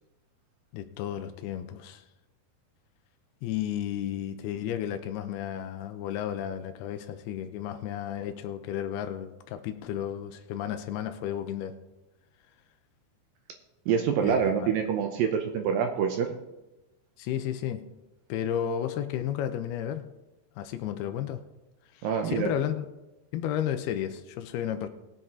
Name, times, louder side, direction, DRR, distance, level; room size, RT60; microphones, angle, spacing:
voice 1, 0.7-2.0 3.4-11.7 14.2-14.7 17.2-17.8 18.3-20.0 20.6-21.4 21.9-22.9 23.3-24.9, left 10 dB, 85° left, 9 dB, 2.5 m, -33 dB
voice 2, 13.9-16.3 22.0-22.5, right 7 dB, 80° right, 4 dB, 2.2 m, -26 dB
19.5 x 7.9 x 3.7 m, 1.0 s
omnidirectional pair, 4.8 m